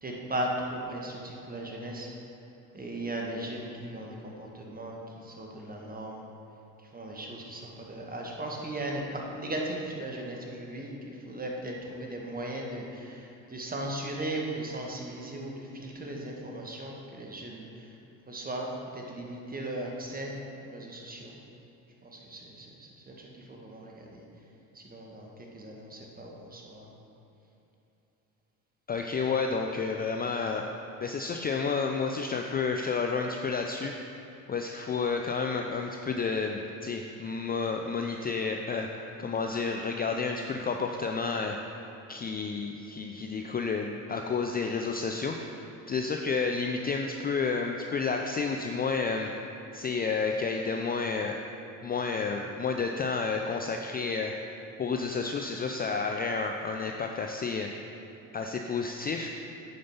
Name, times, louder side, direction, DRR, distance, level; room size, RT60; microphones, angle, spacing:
voice 1, 0.0-2.1 2.7-6.2 6.8-17.9 18.3-20.4 20.6-21.3 22.0-24.2 24.7-26.9, right 1 dB, 20° right, 0 dB, 1.7 m, -37 dB
voice 2, 28.9-30.6 31.0-33.9 34.5-38.9 39.2-41.6 42.1-49.3 49.7-51.4 51.8-54.3 54.8-58.0 58.3-59.3, left 4 dB, 20° left, 3 dB, 0.5 m, -30 dB
9.6 x 5.2 x 5.6 m, 2.9 s
hypercardioid pair, 75°, 41 cm